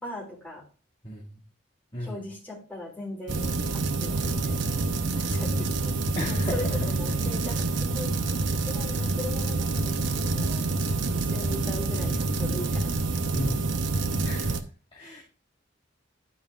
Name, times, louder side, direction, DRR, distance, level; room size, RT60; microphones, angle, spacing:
voice 1, 0.0-0.6 2.0-5.9 6.3-8.1 8.6-10.6 11.1-13.5, left 2 dB, 10° left, -3 dB, 3.8 m, -39 dB
voice 2, 1.0-1.4 1.9-2.3 6.1-6.9 7.4-7.6 12.0-12.5 13.3-13.8 14.2-15.2, equal, 25° left, -5 dB, 1.7 m, -35 dB
sound 1, 3.3-14.6, right 3 dB, 75° right, 0.8 m, -27 dB
10.5 x 5.3 x 3.6 m, 0.35 s
head